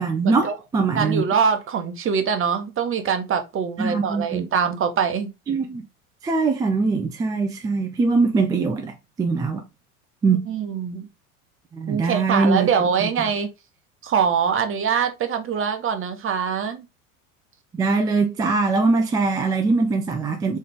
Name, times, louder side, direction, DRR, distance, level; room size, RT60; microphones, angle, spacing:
voice 1, 0.0-1.2 3.8-4.5 5.5-5.8 6.2-9.6 10.2-10.5 11.7-13.1 17.7-20.6, right 4 dB, 10° right, 0.3 m, -22 dB
voice 2, 1.0-5.3 10.5-11.1 11.9-13.5 14.0-16.8, right 6 dB, 30° right, 1.0 m, -23 dB
3.8 x 3.2 x 3.5 m
hypercardioid pair, 80°, 43 cm